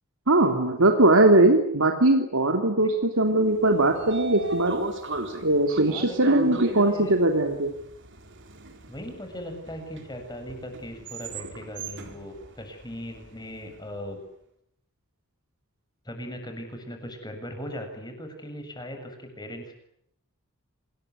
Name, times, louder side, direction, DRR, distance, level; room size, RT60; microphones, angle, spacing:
voice 1, 0.3-4.7 5.4-7.7, right 2 dB, 75° right, 4 dB, 3.0 m, -20 dB
Train / Sliding door, 3.5-13.7, right 2 dB, 60° right, 3.8 m, -36 dB
voice 2, 5.9-7.2 8.9-14.2 16.0-19.7, equal, 20° left, 5 dB, 7.3 m, -39 dB
27.0 x 21.0 x 9.6 m, 0.75 s
head